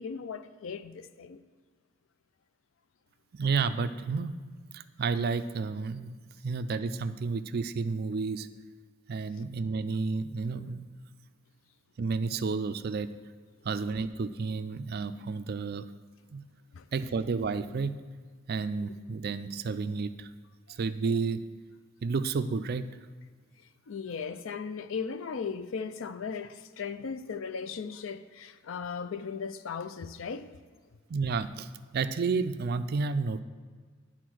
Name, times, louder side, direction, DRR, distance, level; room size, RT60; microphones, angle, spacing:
voice 1, 0.0-1.4 16.7-16.9 20.7-20.8 23.9-30.5, left 5 dB, 65° left, 0.4 m, -37 dB
voice 2, 3.3-4.3 4.7-6.2 6.4-8.5 9.1-10.9 12.0-13.1 13.6-15.9 16.3-16.4 16.9-18.0 18.5-20.3 20.7-21.4 22.0-22.9 31.1-33.4, right 4 dB, 50° right, 0.4 m, -31 dB
11.0 x 4.2 x 6.2 m
head